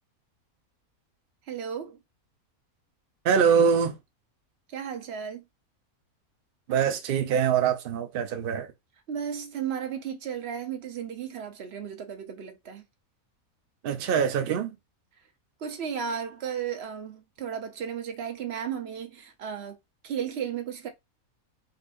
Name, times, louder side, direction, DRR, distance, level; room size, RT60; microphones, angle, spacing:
voice 1, 1.5-2.0 4.7-5.4 9.1-12.8 15.6-19.8 20.0-20.9, right 8 dB, 55° right, 0.9 m, -34 dB
voice 2, 3.2-4.0 6.7-8.7 13.8-14.7, right 7 dB, 70° right, 0.5 m, -24 dB
4.0 x 2.6 x 2.5 m
omnidirectional pair, 1.5 m